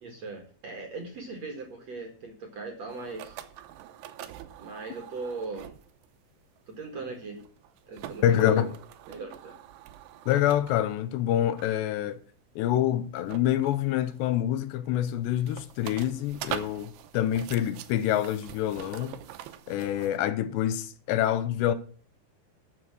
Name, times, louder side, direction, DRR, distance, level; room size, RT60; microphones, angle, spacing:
voice 1, 0.0-3.4 4.6-5.7 6.7-7.4 7.9-8.7 9.1-9.5, right 3 dB, 50° right, 2.2 m, -38 dB
sound 1, 2.9-6.1 6.6-6.7 7.2-11.0 11.6-11.8 13.2-14.3 14.9-20.2, right 12 dB, 80° right, 2.7 m, -44 dB
voice 2, 8.2-8.7 10.3-12.2 12.6-19.2 19.7-21.7, left 11 dB, 80° left, 2.8 m, -26 dB
12.5 x 6.9 x 6.2 m
omnidirectional pair, 5.2 m